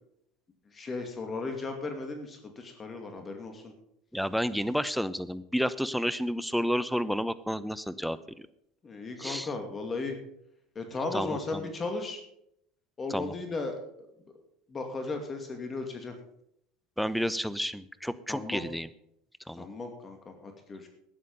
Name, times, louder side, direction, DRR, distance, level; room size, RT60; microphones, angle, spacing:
voice 1, 0.7-3.7 8.8-10.2 10.8-12.2 13.0-13.8 14.7-16.1 18.3-18.6 19.6-20.9, left 3 dB, 30° left, 5 dB, 2.4 m, -36 dB
voice 2, 4.1-8.5 9.2-9.5 11.1-11.6 13.1-13.3 17.0-18.9 19.5-19.7, equal, ahead, 15 dB, 0.8 m, -31 dB
13.0 x 9.9 x 5.5 m, 0.75 s
hypercardioid pair, 80°, 0 cm